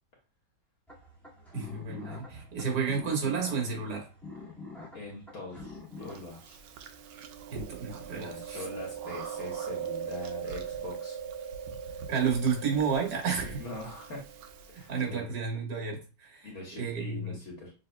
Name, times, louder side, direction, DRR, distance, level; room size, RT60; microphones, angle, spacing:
sound 1, 0.9-6.1, left 3 dB, ahead, 1.7 m, -46 dB
voice 1, 1.5-4.1 7.5-8.6 12.1-13.6 14.9-17.4, right 6 dB, 65° right, 0 dB, 2.0 m, -31 dB
voice 2, 4.9-6.6 8.1-11.2 13.6-14.2 14.7-15.3 16.4-17.7, left 2 dB, 55° left, -2 dB, 1.7 m, -42 dB
Chewing mastication, 6.1-15.0, right 7 dB, 85° right, 1.3 m, -40 dB
6.7 x 3.3 x 2.2 m, 0.33 s
omnidirectional pair, 1.9 m